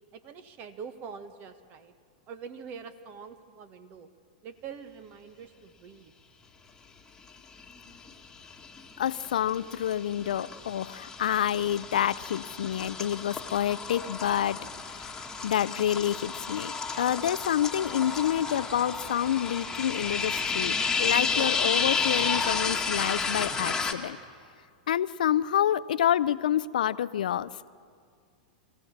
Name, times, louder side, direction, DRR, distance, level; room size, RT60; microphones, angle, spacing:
voice 1, 0.1-1.9 2.3-4.1 4.4-6.1, right 6 dB, 40° right, 11 dB, 1.3 m, -44 dB
sound 1, 7.6-8.1 8.4-23.9, left 5 dB, 10° left, 1.7 m, -31 dB
voice 2, 9.0-15.1 15.4-24.2 24.9-27.5, left 10 dB, 75° left, 18 dB, 0.5 m, -28 dB
24.5 x 16.0 x 7.3 m, 2.2 s
hypercardioid pair, 110°, 4 cm